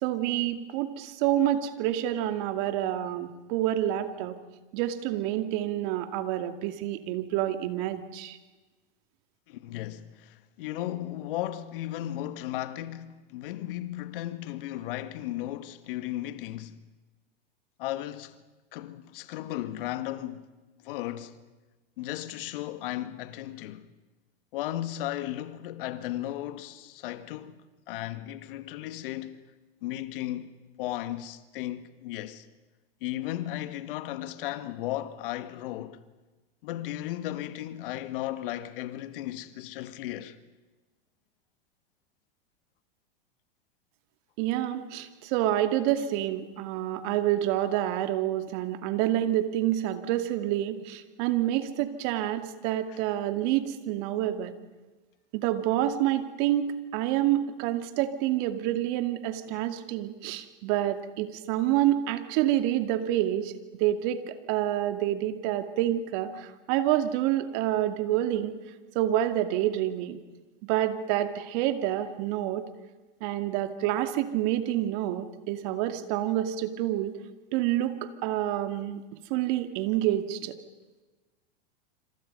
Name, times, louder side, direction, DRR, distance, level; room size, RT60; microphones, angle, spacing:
voice 1, 0.0-4.4 4.7-8.4 44.4-54.5 55.3-63.5 63.8-68.5 68.9-70.2 70.6-72.6 73.2-77.1 77.5-79.0 79.3-80.6, right 13 dB, 55° right, 2.4 m, -28 dB
voice 2, 9.5-16.8 17.8-18.4 18.7-20.5 20.8-21.4 22.0-23.9 24.5-27.6 27.9-29.4 29.8-30.5 30.8-32.4 33.0-36.0 36.6-40.4 52.9-53.0, left 14 dB, 65° left, 1.8 m, -35 dB
27.0 x 27.0 x 5.5 m
hypercardioid pair, 110°, 30 cm